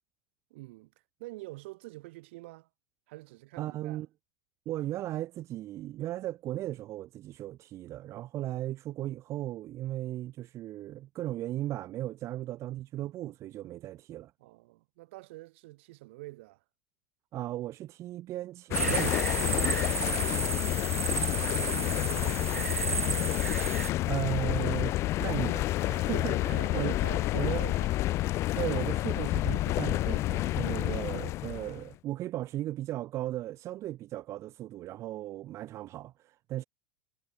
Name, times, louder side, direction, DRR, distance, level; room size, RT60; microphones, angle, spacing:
voice 1, 0.5-0.9 1.2-2.7 3.1-4.0 14.4-16.6 20.8-23.4 26.1-28.1, right 21 dB, 60° right, 6.3 m, -47 dB
voice 2, 3.6-4.1 4.6-14.3 17.3-20.4 24.1-24.9 25.2-27.0 27.3-27.7 28.5-36.6, right 14 dB, 40° right, 3.3 m, -36 dB
sound 1, 18.7-31.8, left 16 dB, 40° left, 0.5 m, -29 dB
sound 2, 18.7-23.9, right 5 dB, 85° right, 1.0 m, -33 dB
figure-of-eight pair, 85°, 7 cm